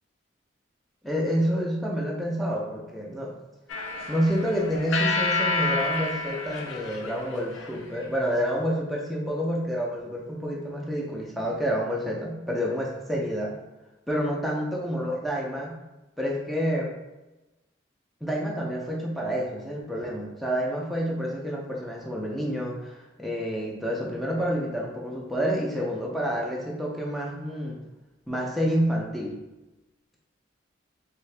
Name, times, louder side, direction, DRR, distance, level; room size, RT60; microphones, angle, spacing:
voice 1, 1.0-3.3 4.1-13.5 14.1-15.8 16.2-16.9 18.2-27.8 28.3-29.4, equal, ahead, -3 dB, 0.4 m, -28 dB
sound 1, 3.7-8.0, left 3 dB, 85° left, 0.4 m, -29 dB
2.7 x 2.4 x 3.2 m, 1.0 s
head